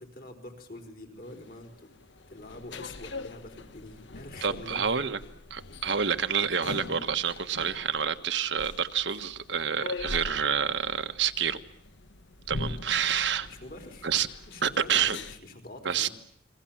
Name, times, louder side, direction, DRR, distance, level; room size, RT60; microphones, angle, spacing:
voice 1, 0.0-1.9 2.3-5.1 13.4-14.1 14.5-16.1, left 1 dB, 50° left, 4 dB, 4.3 m, -45 dB
sound 1, 1.2-15.4, left 2 dB, 75° left, 1.2 m, -42 dB
voice 2, 4.4-5.2 5.5-11.6 12.5-13.5 14.0-14.3 14.6-15.2 15.8-16.1, right 7 dB, 80° right, 8 dB, 1.4 m, -28 dB
30.0 x 22.5 x 7.4 m, 0.66 s
head